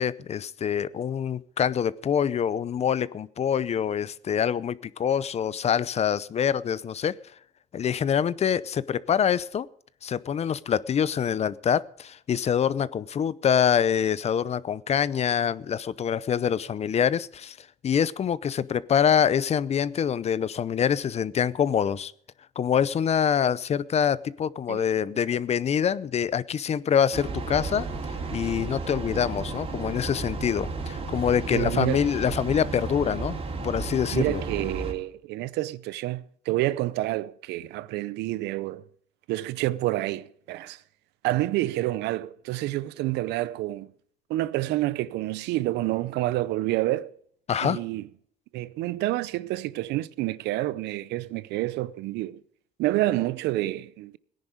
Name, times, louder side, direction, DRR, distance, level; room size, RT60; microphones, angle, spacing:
voice 1, 0.0-7.1 7.7-9.7 10.0-17.6 17.8-22.1 22.6-27.9 28.3-33.4 33.6-34.4 47.5-47.8, left 8 dB, 40° left, 0.7 m, -25 dB
Train, 27.1-34.9, right 3 dB, 35° right, 3.3 m, -33 dB
voice 2, 31.5-32.0 34.1-38.8 39.3-40.8 41.2-43.9 44.3-47.1 47.6-48.0 48.5-52.4 52.8-54.2, right 16 dB, 85° right, 0.7 m, -28 dB
18.0 x 10.5 x 5.1 m
cardioid pair, 110°, 17 cm